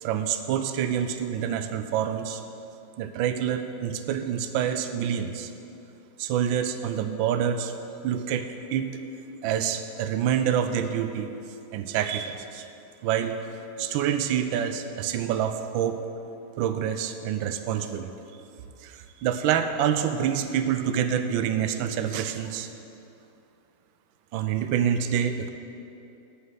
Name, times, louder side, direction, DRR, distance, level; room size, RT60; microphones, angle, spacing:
voice 1, 0.0-2.4 3.0-5.5 6.2-7.7 8.0-9.0 9.4-11.3 11.7-12.7 13.0-13.4 13.8-16.0 16.6-18.1 18.8-22.7 24.3-25.5, right 9 dB, 75° right, 8 dB, 1.3 m, -27 dB
8.3 x 5.8 x 8.0 m, 2.8 s
omnidirectional pair, 2.3 m